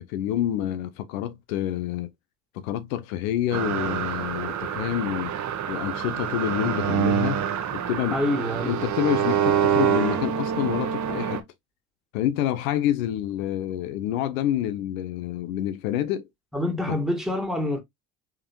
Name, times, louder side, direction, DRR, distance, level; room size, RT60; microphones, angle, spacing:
voice 1, 0.0-2.1 2.5-5.3 5.7-7.4 7.7-8.2 8.7-11.4 12.1-16.2, left 11 dB, 75° left, 0.6 m, -27 dB
sound 1, 3.5-11.4, right 9 dB, 45° right, 0.9 m, -26 dB
voice 2, 8.1-8.8 16.5-17.8, left 1 dB, ahead, 1.7 m, -26 dB
3.6 x 3.3 x 2.9 m
hypercardioid pair, 60°, 42 cm